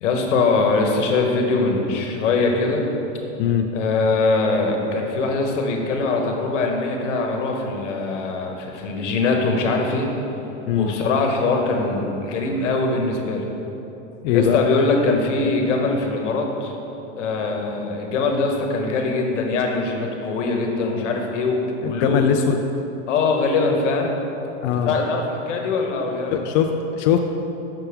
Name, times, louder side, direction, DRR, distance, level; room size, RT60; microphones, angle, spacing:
voice 1, 0.0-2.9 3.7-10.1 10.7-13.4 14.3-16.7 17.1-22.2 23.1-24.1 24.8-26.4, left 3 dB, 85° left, 2 dB, 1.1 m, -22 dB
voice 2, 14.2-14.6 21.8-22.6 24.6-24.9 26.3-27.2, left 9 dB, 55° left, 4 dB, 0.4 m, -20 dB
6.8 x 5.9 x 3.4 m, 3.0 s
supercardioid pair, 115°, 36 cm